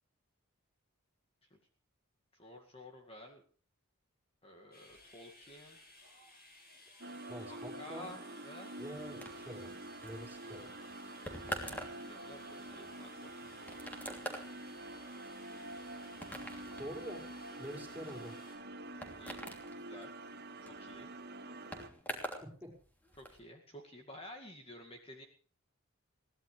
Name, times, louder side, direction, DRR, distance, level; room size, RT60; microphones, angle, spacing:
voice 1, 2.3-3.4 4.4-5.8 7.5-8.2 8.4-8.7 11.3-13.5 19.2-19.4 19.9-20.1 20.6-21.1 23.2-25.3, left 1 dB, 25° left, 2 dB, 2.2 m, -52 dB
sound 1, 4.7-18.6, left 2 dB, 45° left, 8.0 m, -59 dB
sound 2, 7.0-21.9, right 2 dB, 50° right, 2.0 m, -47 dB
voice 2, 7.3-8.1 8.8-9.7 10.0-10.7 16.8-18.4 22.4-22.7, equal, 10° right, 1 dB, 5.4 m, -46 dB
sound 3, 9.2-22.5 22.8-23.4, equal, 10° left, 3.1 m, -46 dB
22.0 x 17.5 x 3.4 m, 0.43 s
head